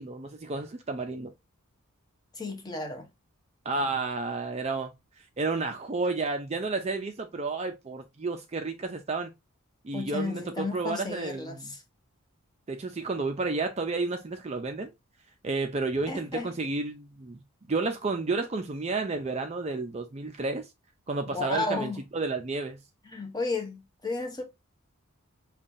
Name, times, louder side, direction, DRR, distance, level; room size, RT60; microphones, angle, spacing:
voice 1, 0.0-1.3 3.7-4.9 5.4-9.3 9.8-11.7 12.7-14.9 15.4-17.4 17.7-20.7 21.1-22.8, right 3 dB, 30° right, 0.4 m, -31 dB
voice 2, 2.3-3.0 9.9-11.8 16.1-16.5 21.3-22.0 23.1-24.4, left 3 dB, 20° left, 0.7 m, -33 dB
5.4 x 2.3 x 2.5 m
head